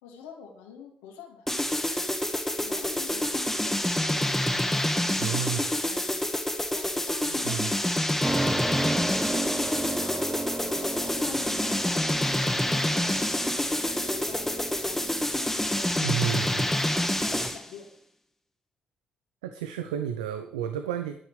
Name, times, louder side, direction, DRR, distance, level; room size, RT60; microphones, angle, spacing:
voice 1, 0.0-2.0 2.6-4.5 5.4-6.3 6.7-7.9 8.5-10.3 10.6-13.2 13.9-15.1 15.4-16.6 17.0-17.9, left 7 dB, 80° left, 1 dB, 2.5 m, -46 dB
sound 1, 1.5-17.7, left 1 dB, 10° left, 2.0 m, -27 dB
voice 2, 5.2-5.6 7.2-7.7 16.0-16.6 19.4-21.2, right 9 dB, 85° right, 9 dB, 0.7 m, -31 dB
sound 2, 8.2-17.6, right 2 dB, 20° right, 1.0 m, -35 dB
23.0 x 8.8 x 3.4 m, 0.65 s
hypercardioid pair, 40°, 4 cm